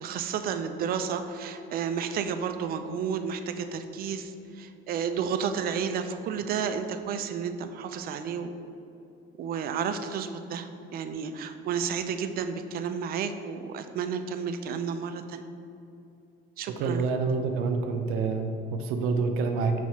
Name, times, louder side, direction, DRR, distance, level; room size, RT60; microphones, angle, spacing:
voice 1, 0.0-8.6 9.4-15.5 16.6-17.1, right 6 dB, 45° right, 8 dB, 0.4 m, -32 dB
voice 2, 16.8-19.7, right 4 dB, 85° right, 5 dB, 0.7 m, -27 dB
4.8 x 4.1 x 5.6 m, 2.7 s
cardioid pair, 150°, 21 cm